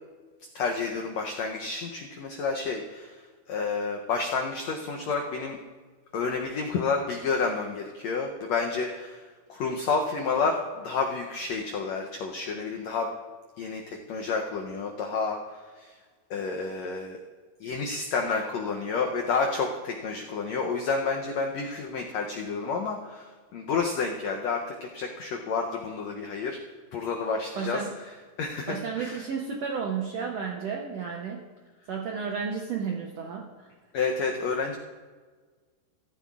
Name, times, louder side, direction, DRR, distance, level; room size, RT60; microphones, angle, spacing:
voice 1, 0.5-3.1 3.5-5.6 6.1-9.2 9.5-13.1 13.6-15.9 16.3-17.2 17.6-24.6 24.9-26.6 26.9-27.8 28.4-29.2 33.9-34.8, left 4 dB, 85° left, 2 dB, 1.5 m, -30 dB
voice 2, 27.6-27.9 28.7-31.4 31.9-33.7, right 6 dB, 80° right, 0 dB, 1.5 m, -32 dB
15.0 x 14.0 x 2.4 m, 1.5 s
omnidirectional pair, 4.1 m